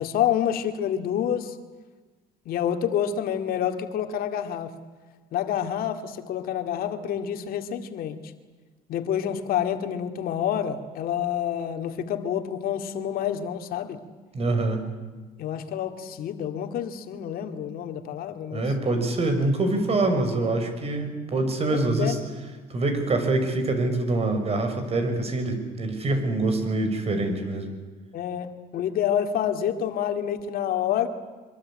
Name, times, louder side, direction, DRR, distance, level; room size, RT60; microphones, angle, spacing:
voice 1, 0.0-1.6 2.5-4.8 5.3-8.3 8.9-14.0 15.4-18.6 21.7-22.2 28.1-31.1, left 9 dB, 70° left, 7 dB, 2.3 m, -28 dB
voice 2, 14.3-14.8 18.5-22.2 22.7-27.7, right 2 dB, 40° right, 7 dB, 6.0 m, -25 dB
25.0 x 23.0 x 8.8 m, 1.4 s
cardioid pair, 100°, 16 cm